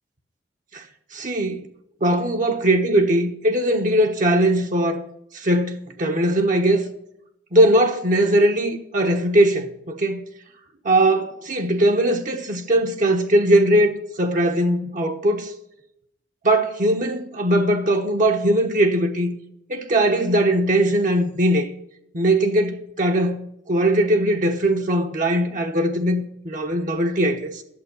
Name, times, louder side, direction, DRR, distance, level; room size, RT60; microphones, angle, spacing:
voice 1, 1.1-1.7 2.0-5.0 5.3-6.9 7.5-10.2 10.8-15.5 16.4-19.3 19.7-21.7 22.1-27.6, right 1 dB, 50° right, 1.1 m, -20 dB
11.5 x 7.5 x 5.5 m
head